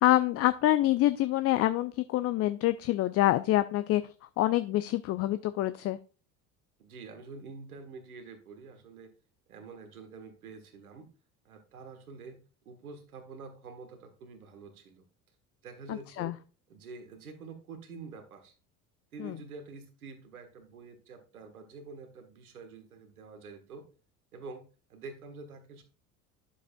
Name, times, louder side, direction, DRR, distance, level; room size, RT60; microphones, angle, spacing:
voice 1, 0.0-4.0 4.4-6.0 15.9-16.3 19.2-19.3, left 15 dB, 35° left, 13 dB, 0.5 m, -26 dB
voice 2, 6.8-9.1 9.5-11.1 11.4-12.4 12.6-15.0 15.6-16.4 16.7-18.5 19.1-23.9 24.3-24.6 24.9-25.8, right 4 dB, 80° right, 7 dB, 1.5 m, -47 dB
9.9 x 7.1 x 2.3 m, 0.35 s
figure-of-eight pair, 70°, 43 cm